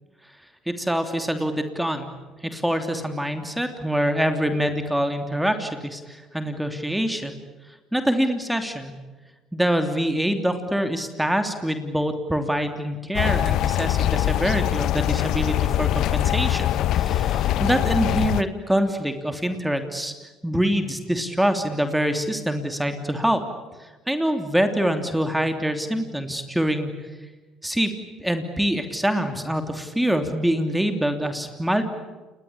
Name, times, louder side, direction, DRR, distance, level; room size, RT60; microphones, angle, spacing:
voice 1, 0.7-2.1 2.4-7.3 7.9-8.9 9.5-20.1 20.4-23.4 23.8-26.9 27.6-27.9 28.2-31.8, equal, 5° right, 6 dB, 3.1 m, -25 dB
sound 1, 13.1-18.4, left 12 dB, 70° left, 0.8 m, -23 dB
29.0 x 21.0 x 8.7 m, 1.2 s
supercardioid pair, 80°, 0 cm